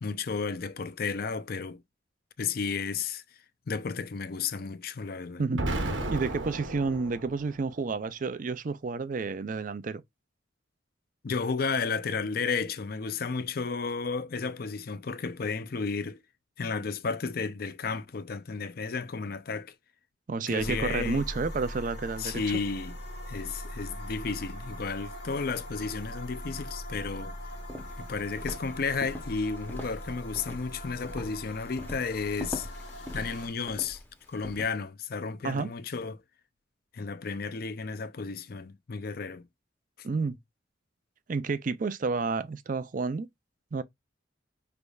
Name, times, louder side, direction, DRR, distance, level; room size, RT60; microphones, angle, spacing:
voice 1, 0.0-1.8 2.4-3.2 3.7-5.4 11.2-16.2 16.6-19.7 20.5-21.2 22.2-22.9 23.3-27.4 28.0-32.7 33.1-34.0 34.3-36.2 36.9-39.4, left 5 dB, 50° left, 0.5 m, -33 dB
Explosion, 5.5-7.7, right 1 dB, 85° right, 1.0 m, -33 dB
voice 2, 6.1-10.0 20.3-22.6 35.4-35.7 40.0-40.4 41.3-43.3 43.7-43.8, right 4 dB, 45° right, 0.4 m, -30 dB
sound 1, 20.6-33.5, left 1 dB, 70° left, 1.4 m, -41 dB
Walk footsteps, 27.6-34.6, left 1 dB, 10° left, 0.7 m, -42 dB
5.1 x 3.4 x 2.3 m
head